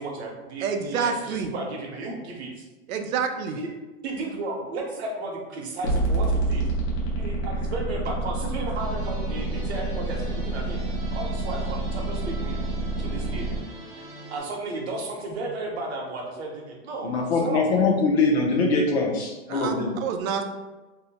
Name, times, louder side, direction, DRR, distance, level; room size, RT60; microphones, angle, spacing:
voice 1, 0.0-2.7 3.5-3.7 4.0-6.6 7.1-10.8 11.1-12.6 13.0-13.5 14.3-17.7, right 2 dB, 55° right, 0 dB, 0.7 m, -34 dB
voice 2, 0.6-1.5 2.9-3.6 19.5-20.5, right 6 dB, 90° right, 5 dB, 0.5 m, -28 dB
sound 1, 5.8-13.6, right 2 dB, 70° left, 1.0 m, -28 dB
sound 2, 8.8-14.4, right 2 dB, 25° right, 0.4 m, -43 dB
voice 3, 17.0-20.0, left 3 dB, 55° left, 1 dB, 0.6 m, -22 dB
2.6 x 2.0 x 2.8 m, 1.1 s
supercardioid pair, 175°, 39 cm